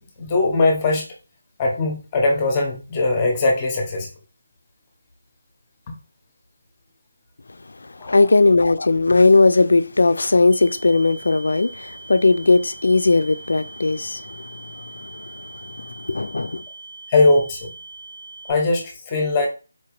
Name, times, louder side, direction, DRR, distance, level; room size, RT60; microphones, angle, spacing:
voice 1, 0.2-1.0 1.6-4.1 8.0-8.2 17.1-17.7 18.5-19.5, left 2 dB, 15° left, 0.7 m, -20 dB
voice 2, 8.1-14.4 14.7-15.5 15.8-16.6, left 3 dB, 65° left, 0.3 m, -18 dB
sound 1, 10.5-18.5, right 3 dB, 65° right, 1.3 m, -41 dB
4.2 x 2.9 x 3.0 m
figure-of-eight pair, 175°, 0 cm